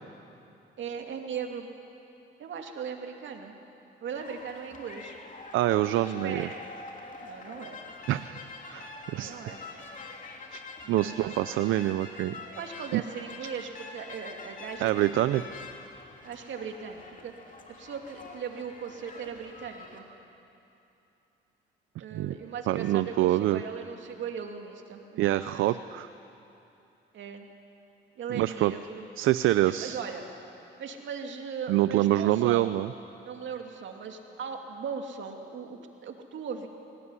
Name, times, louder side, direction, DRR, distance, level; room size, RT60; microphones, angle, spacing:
voice 1, 0.8-1.7 2.4-3.5 4.0-5.2 6.2-6.6 7.2-7.8 9.1-9.6 10.8-11.7 12.5-15.5 16.2-17.3 17.8-20.1 22.0-25.6 27.1-27.5 28.2-29.1 29.6-30.2 30.8-32.7 33.2-36.7, right 6 dB, 70° right, 3 dB, 2.6 m, -38 dB
sound 1, 4.2-20.0, left 3 dB, 40° left, 3.0 m, -45 dB
voice 2, 5.5-6.5 8.1-8.2 8.7-9.4 10.5-10.6 10.9-12.3 12.9-13.0 14.8-15.4 22.1-22.3 22.7-23.6 25.2-26.1 28.3-28.7 29.2-30.0 31.7-32.9, right 14 dB, 85° right, 13 dB, 0.5 m, -25 dB
23.0 x 18.0 x 9.8 m, 2.8 s
cardioid pair, 90°, 20 cm